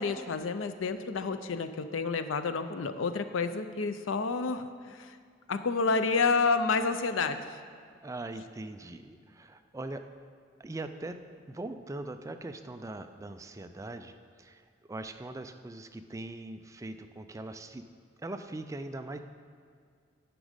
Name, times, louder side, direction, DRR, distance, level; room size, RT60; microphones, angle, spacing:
voice 1, 0.0-5.2 5.5-7.6, left 4 dB, 90° left, 10 dB, 0.5 m, -29 dB
voice 2, 8.0-10.1 10.6-17.9 18.2-19.2, right 2 dB, 15° right, 8 dB, 0.3 m, -41 dB
10.0 x 6.2 x 5.1 m, 2.1 s
head